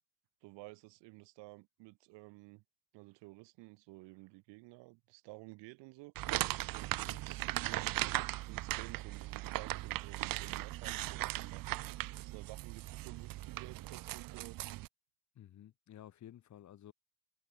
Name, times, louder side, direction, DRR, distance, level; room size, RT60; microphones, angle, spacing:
voice 1, 0.4-2.6 2.9-6.1 6.7-11.7 12.2-14.6, right 24 dB, 85° right, 1.7 m, -53 dB
sound 1, 6.2-14.9, right 17 dB, 55° right, 0.9 m, -38 dB
voice 2, 6.9-7.2 8.1-8.2 15.3-16.9, left 11 dB, 40° left, 2.1 m, -54 dB
cardioid pair, 145°, 42 cm